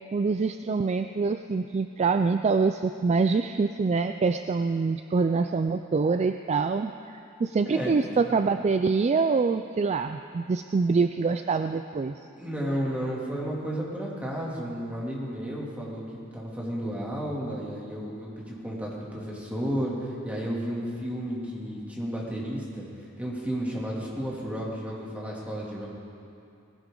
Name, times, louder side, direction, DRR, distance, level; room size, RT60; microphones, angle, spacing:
voice 1, 0.1-6.9 7.4-12.1, right 4 dB, 30° right, 8 dB, 0.3 m, -25 dB
voice 2, 12.4-16.0 16.3-25.9, equal, 5° right, -5 dB, 2.7 m, -32 dB
19.5 x 16.5 x 3.8 m, 2.6 s
head